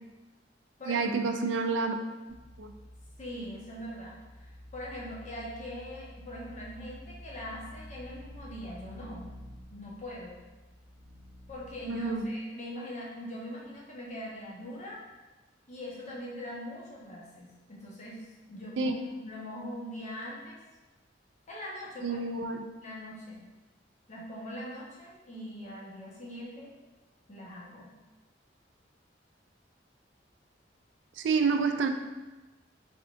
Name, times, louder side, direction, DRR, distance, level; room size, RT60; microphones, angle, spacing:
voice 1, 0.9-1.9 2.6-2.8 11.9-12.3 18.8-18.9 22.0-22.6 31.2-31.9, right 4 dB, 85° right, 6 dB, 0.3 m, -28 dB
sound 1, 2.3-12.2, equal, 30° right, 0.6 m, -50 dB
voice 2, 3.2-9.3 9.7-10.4 11.5-15.0 15.7-20.6 21.5-22.2 22.8-23.4 24.1-26.7 27.3-27.9, equal, 40° left, -5 dB, 0.9 m, -42 dB
3.7 x 3.4 x 2.4 m, 1.2 s
head